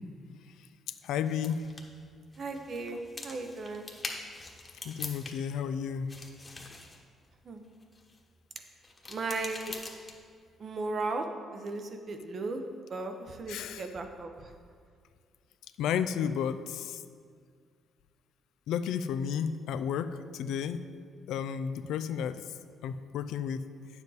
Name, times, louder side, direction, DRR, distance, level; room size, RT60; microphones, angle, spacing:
voice 1, 1.0-1.7 4.8-6.1 13.5-13.8 15.8-17.0 18.7-20.8 21.3-22.4 22.8-23.6, left 8 dB, 85° left, 11 dB, 0.4 m, -32 dB
sound 1, 1.3-5.6 5.9-8.2 8.8-10.4, left 2 dB, 25° left, 1.2 m, -44 dB
voice 2, 2.4-3.9 7.4-7.6 9.1-9.7 10.6-11.3 11.5-12.6 12.9-14.5, right 3 dB, 50° right, 5 dB, 0.9 m, -36 dB
9.0 x 7.2 x 4.1 m, 2.1 s
cardioid pair, 90°, 0 cm